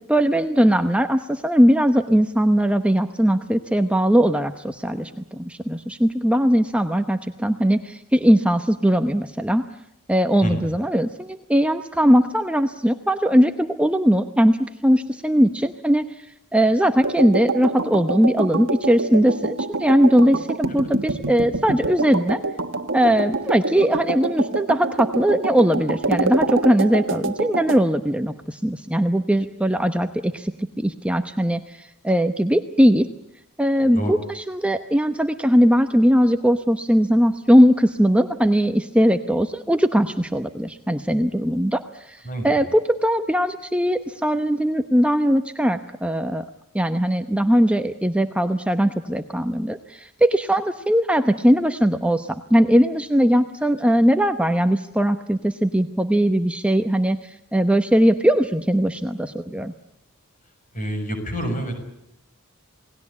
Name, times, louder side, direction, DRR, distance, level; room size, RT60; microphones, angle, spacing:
voice 1, 0.0-9.6 10.1-16.1 16.5-22.4 22.9-33.1 33.6-41.8 42.1-46.4 46.7-59.7, equal, 5° right, 7 dB, 0.9 m, -20 dB
sound 1, 17.0-27.8, right 3 dB, 60° right, 1.5 m, -26 dB
voice 2, 42.2-42.6 60.7-61.8, equal, 35° left, 6 dB, 6.7 m, -27 dB
28.5 x 19.0 x 8.5 m, 0.82 s
head